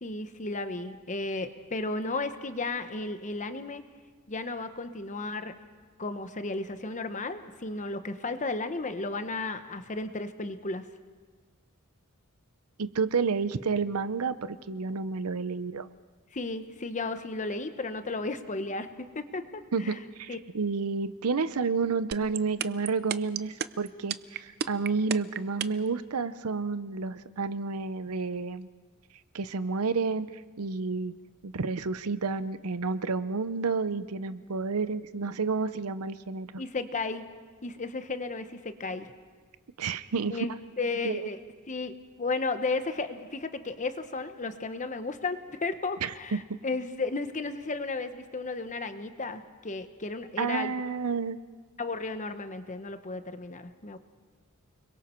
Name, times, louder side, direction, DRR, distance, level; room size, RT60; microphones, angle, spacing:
voice 1, 0.0-3.8 4.3-5.5 6.0-10.8 16.3-20.0 20.3-20.4 36.6-37.2 37.6-39.1 40.3-41.4 41.7-41.9 42.2-50.7 51.8-54.0, left 3 dB, 35° left, 9 dB, 1.0 m, -34 dB
voice 2, 12.8-15.9 19.7-28.7 29.3-30.3 30.6-31.1 31.4-36.5 39.8-40.4 41.0-41.3 46.0-46.4 50.4-51.4, right 4 dB, 80° right, 14 dB, 0.7 m, -30 dB
sound 1, 22.1-25.9, right 8 dB, 50° right, 0.5 m, -31 dB
30.0 x 22.0 x 4.5 m, 1.5 s
head